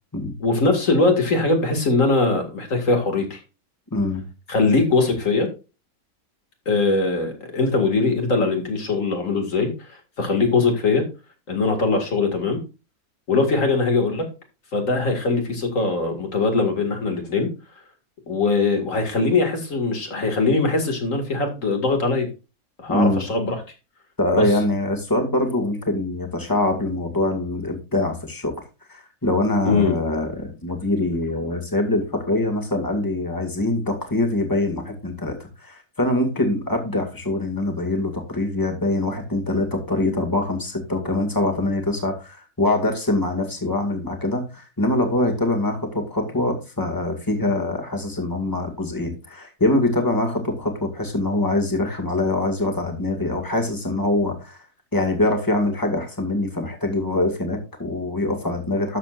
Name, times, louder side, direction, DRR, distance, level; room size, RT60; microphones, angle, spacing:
voice 1, 0.4-3.4 4.5-5.5 6.7-11.1 11.5-12.6 13.3-14.2 14.7-17.5 18.3-22.3 22.8-23.6 24.3-24.5 29.7-30.0, left 3 dB, 55° left, 4 dB, 2.5 m, -21 dB
voice 2, 3.9-4.2 22.9-23.2 24.2-28.5 28.9-54.6 54.9-59.0, left 2 dB, 15° left, 3 dB, 2.1 m, -24 dB
12.5 x 7.2 x 2.5 m, 0.31 s
omnidirectional pair, 1.6 m